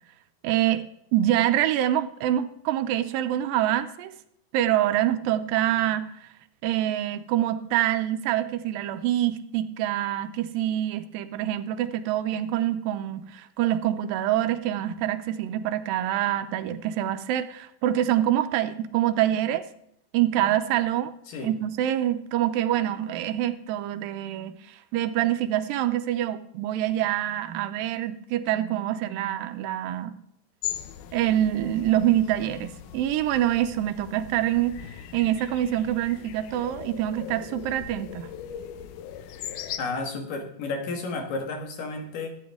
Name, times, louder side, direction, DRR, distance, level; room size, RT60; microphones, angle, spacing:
voice 1, 0.4-0.9 1.1-4.1 4.5-6.3 6.6-19.7 20.1-21.1 21.4-30.1 31.1-34.8 35.1-38.3, right 12 dB, 80° right, 9 dB, 2.2 m, -25 dB
sound 1, 30.6-39.8, left 10 dB, 80° left, 1.9 m, -39 dB
voice 2, 39.8-42.3, left 3 dB, 65° left, 3 dB, 3.0 m, -32 dB
13.5 x 8.5 x 3.6 m, 0.72 s
omnidirectional pair, 4.4 m